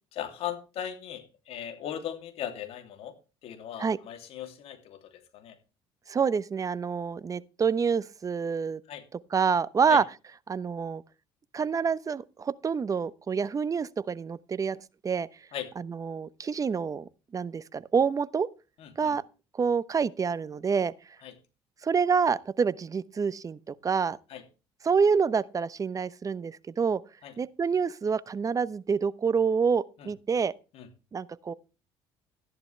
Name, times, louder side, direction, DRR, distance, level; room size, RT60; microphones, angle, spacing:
voice 1, 0.1-5.6 8.9-9.1 9.9-10.0 15.5-15.7 18.8-19.2 21.2-21.4 24.3-24.4 27.2-27.3 30.0-30.1 30.7-30.9, left 10 dB, 65° left, 2.9 m, -38 dB
voice 2, 6.1-8.8 9.3-10.0 10.5-11.0 11.5-14.8 15.0-15.3 15.8-18.5 19.0-19.2 19.6-20.9 21.8-24.2 24.8-27.0 27.4-30.5 31.1-31.5, right 6 dB, 30° right, 0.9 m, -27 dB
14.0 x 10.5 x 3.3 m
supercardioid pair, 85°, 11 cm